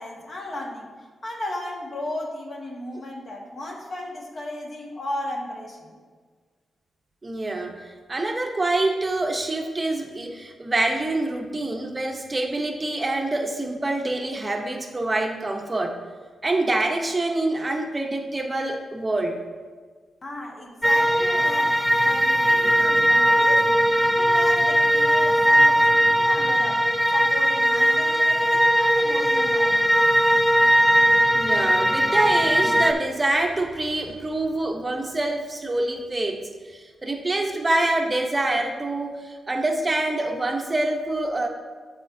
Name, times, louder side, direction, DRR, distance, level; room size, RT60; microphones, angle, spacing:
voice 1, 0.0-6.0 20.2-30.0, left 1 dB, 50° left, -1 dB, 1.5 m, -35 dB
voice 2, 7.2-16.0 16.4-19.4 31.3-41.5, right 2 dB, 25° right, 2 dB, 0.7 m, -26 dB
sound 1, 20.8-32.9, equal, ahead, 0.3 m, -19 dB
13.0 x 4.3 x 2.6 m, 1.5 s
cardioid pair, 95°, 0 cm